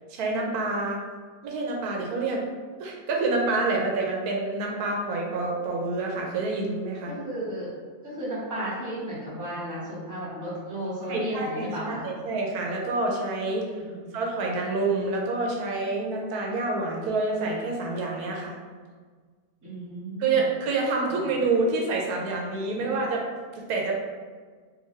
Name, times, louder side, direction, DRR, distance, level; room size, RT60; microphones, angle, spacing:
voice 1, 0.1-1.0 1.4-2.4 2.8-7.1 11.1-13.6 14.1-18.6 20.2-23.2 23.6-24.0, right 3 dB, 85° right, -1 dB, 1.1 m, -27 dB
voice 2, 7.1-7.7 8.0-12.0 13.8-14.2 19.6-20.4, right 1 dB, 15° right, -9 dB, 1.1 m, -34 dB
3.6 x 2.6 x 3.2 m, 1.5 s
omnidirectional pair, 1.6 m